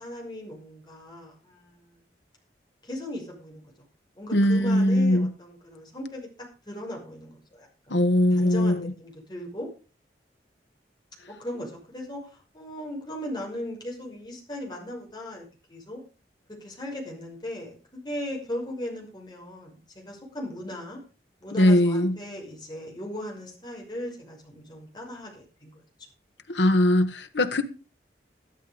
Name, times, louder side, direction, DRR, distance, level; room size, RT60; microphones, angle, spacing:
voice 1, 0.0-2.0 2.8-3.7 4.2-6.3 6.7-8.0 8.3-9.7 11.3-12.2 12.5-16.0 16.5-21.0 21.4-25.8, left 1 dB, 25° left, 5.9 m, -38 dB
voice 2, 4.3-5.3 7.9-8.9 21.5-22.2 26.5-27.6, left 1 dB, 90° left, 1.7 m, -21 dB
12.5 x 12.0 x 5.3 m
head